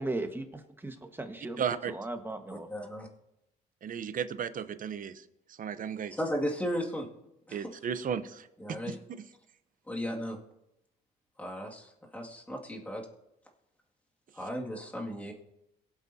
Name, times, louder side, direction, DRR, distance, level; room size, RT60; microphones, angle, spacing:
voice 1, 0.0-1.6 1.9-2.7, right 2 dB, 10° right, 5 dB, 1.5 m, -37 dB
voice 2, 1.6-1.9 3.8-5.1 5.6-6.1 7.5-8.5 8.9-9.2, right 7 dB, 45° right, 12 dB, 0.8 m, -34 dB
voice 3, 2.7-3.1 6.2-7.1 7.5-7.7 8.6-9.0 9.9-10.4 11.4-13.1 14.4-15.3, equal, 10° left, -1 dB, 2.2 m, -35 dB
23.0 x 8.1 x 2.8 m, 0.87 s
cardioid pair, 95°, 19 cm